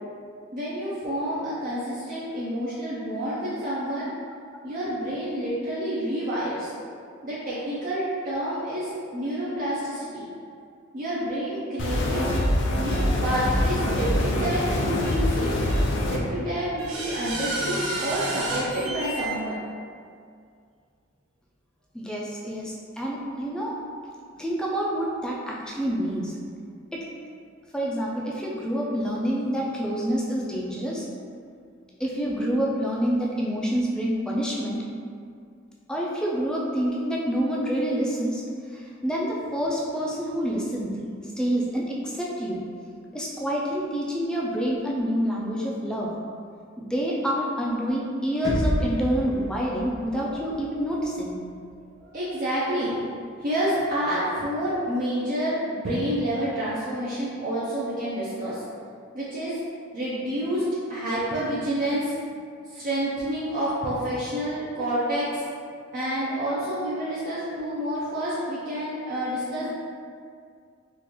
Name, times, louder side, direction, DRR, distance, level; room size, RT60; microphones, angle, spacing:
voice 1, 0.5-4.1 4.6-6.7 7.2-10.2 10.6-10.7 10.9-12.3 12.7-15.6 16.1-19.5 24.7-24.8 50.2-50.6 52.0-53.1 53.4-58.6 59.1-59.6 59.9-62.2 62.7-65.4 65.9-69.7, equal, 45° right, -9 dB, 0.6 m, -28 dB
sound 1, 11.8-16.2, left 1 dB, 60° left, 0.5 m, -24 dB
sound 2, 12.3-12.5 12.9-13.0 14.0-14.1 15.0-15.1 15.7-15.8 16.8-19.3, right 2 dB, 90° right, 0.9 m, -31 dB
voice 2, 21.9-23.7 24.3-26.3 26.9-27.1 27.7-31.1 32.0-34.8 35.9-38.4 38.7-40.9 41.4-42.6 43.1-46.1 46.8-51.4, equal, 5° left, -4 dB, 0.4 m, -27 dB
sound 3, 48.4-52.4, equal, 20° right, 0.9 m, -32 dB
3.8 x 2.4 x 3.0 m, 2.2 s
head